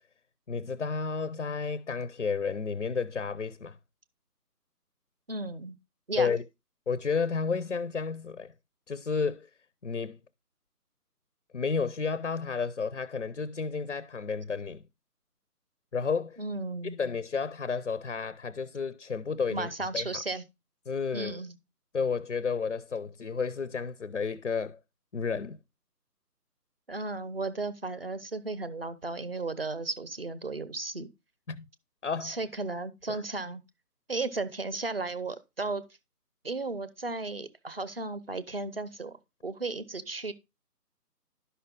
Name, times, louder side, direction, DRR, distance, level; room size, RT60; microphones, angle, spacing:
voice 1, 0.5-3.8 6.2-6.4 6.9-8.5 8.9-9.5 9.8-10.2 11.5-14.8 15.9-16.4 16.8-20.2 20.9-21.4 21.9-24.8 25.1-25.6 31.5-31.6 32.0-32.4 33.1-33.2, left 5 dB, 50° left, 0.5 m, -31 dB
voice 2, 5.3-5.8 6.1-6.3 16.4-17.0 19.5-20.4 21.1-21.6 26.9-31.1 32.2-33.6 34.1-35.8 36.4-39.2 39.4-40.3, right 3 dB, 40° right, 0.7 m, -34 dB
11.0 x 5.6 x 3.6 m
figure-of-eight pair, 165°, 48 cm